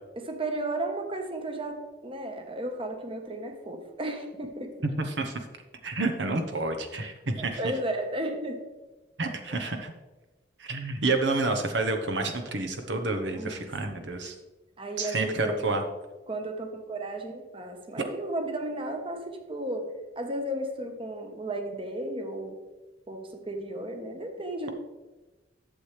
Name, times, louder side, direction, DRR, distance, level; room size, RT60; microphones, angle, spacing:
voice 1, 0.2-4.7 7.3-8.6 9.5-9.6 13.3-14.2 14.8-15.7 16.3-19.9 20.2-22.6 23.1-24.7, right 1 dB, 30° right, 4 dB, 1.1 m, -34 dB
voice 2, 5.1-5.4 5.8-7.6 9.2-9.9 10.6-14.3 15.0-15.8, right 3 dB, 70° right, 5 dB, 0.9 m, -29 dB
11.5 x 7.3 x 3.3 m, 1.1 s
head